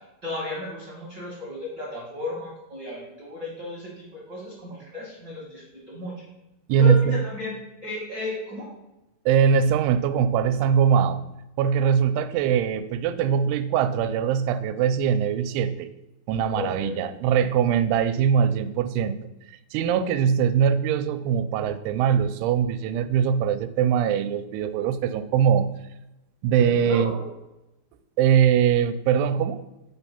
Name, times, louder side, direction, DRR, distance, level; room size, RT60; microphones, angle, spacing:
voice 1, 0.2-6.2 6.8-7.5 7.8-8.7 16.5-17.0 26.6-27.2, left 3 dB, 60° right, -4 dB, 1.1 m, -34 dB
voice 2, 6.7-7.2 9.3-11.2 11.6-15.9 16.3-19.2 19.7-25.7 26.4-27.1 28.2-29.6, right 8 dB, 85° right, 12 dB, 2.5 m, -22 dB
5.8 x 4.4 x 5.6 m, 0.92 s
omnidirectional pair, 4.5 m